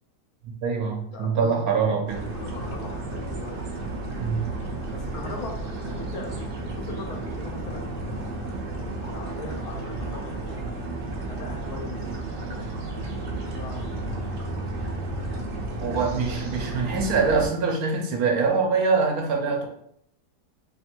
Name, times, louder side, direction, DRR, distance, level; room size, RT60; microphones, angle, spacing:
voice 1, 0.4-2.2 4.2-4.4 15.8-19.7, right 5 dB, 70° right, 1 dB, 1.1 m, -24 dB
voice 2, 1.1-3.6 4.9-5.5 5.8-8.3 9.0-10.8 11.3-12.0 12.5-12.7 13.1-14.2, left 3 dB, 70° left, 0 dB, 1.2 m, -40 dB
sound 1, 2.1-17.5, right 2 dB, 55° right, 0.6 m, -32 dB
3.1 x 2.5 x 4.3 m, 0.70 s
omnidirectional pair, 1.7 m